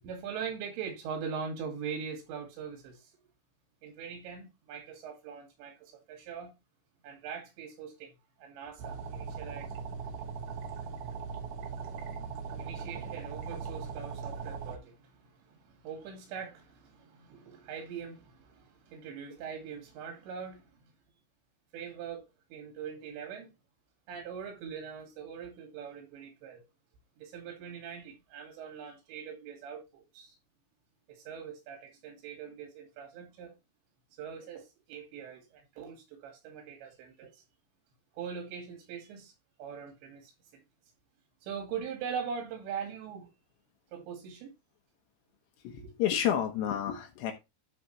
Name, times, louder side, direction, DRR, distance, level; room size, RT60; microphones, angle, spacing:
voice 1, 0.0-3.1 3.8-6.5 7.0-8.1 8.4-9.7 12.6-20.7 21.7-22.2 22.5-23.5 24.1-26.6 27.2-30.4 31.1-33.5 34.2-37.4 38.1-39.3 39.6-40.3 41.4-43.3 43.9-44.5 45.8-45.9, right 7 dB, 90° right, 4.5 m, -42 dB
sound 1, 8.8-14.8, right 5 dB, 65° right, 2.2 m, -39 dB
voice 2, 45.6-47.3, left 10 dB, 75° left, 3.2 m, -30 dB
12.0 x 5.0 x 3.2 m
omnidirectional pair, 5.0 m